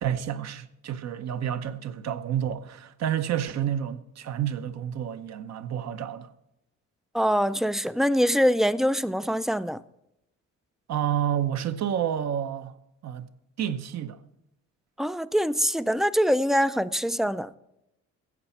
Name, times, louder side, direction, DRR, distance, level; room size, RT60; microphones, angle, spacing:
voice 1, 0.0-6.3 10.9-12.7 13.0-13.3 13.6-14.2, right 9 dB, 60° right, 0.8 m, -29 dB
voice 2, 7.1-9.8 15.0-17.5, equal, ahead, 0.3 m, -24 dB
14.5 x 8.1 x 4.3 m
cardioid pair, 90°, 30 cm